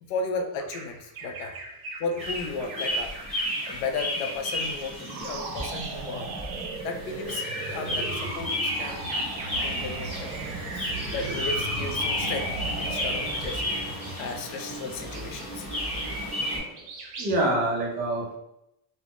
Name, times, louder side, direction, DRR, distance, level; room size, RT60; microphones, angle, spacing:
voice 1, 0.0-1.6 2.0-3.2 3.6-6.3 6.8-9.1 9.6-10.3 10.7-15.7, left 4 dB, 55° left, 5 dB, 0.5 m, -34 dB
Bird vocalization bird call bird song, 0.6-6.6 7.0-7.2 8.2-10.5 11.0-11.6 12.0-16.5 16.7-17.4, right 2 dB, 50° right, 0.7 m, -43 dB
sound 1, 2.2-16.6, equal, 15° left, 1.0 m, -32 dB
sound 2, 5.0-14.5, right 3 dB, 85° right, 0.6 m, -37 dB
voice 2, 16.5-16.8 17.2-18.4, right 1 dB, 25° right, -2 dB, 0.3 m, -26 dB
2.4 x 2.0 x 3.4 m, 0.81 s
cardioid pair, 155°, 49 cm